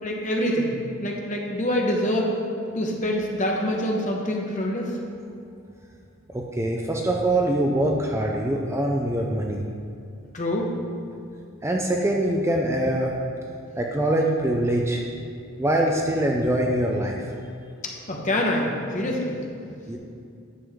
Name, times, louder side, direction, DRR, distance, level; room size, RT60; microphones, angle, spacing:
voice 1, 0.0-0.7 1.0-2.4 2.7-5.0 10.3-10.7 18.1-19.4, left 1 dB, 35° left, 0 dB, 1.1 m, -25 dB
voice 2, 6.3-9.6 11.6-13.1 13.8-15.0 15.6-17.2 19.9-20.0, right 1 dB, 15° right, 0 dB, 0.5 m, -23 dB
10.5 x 7.1 x 3.6 m, 2.5 s
head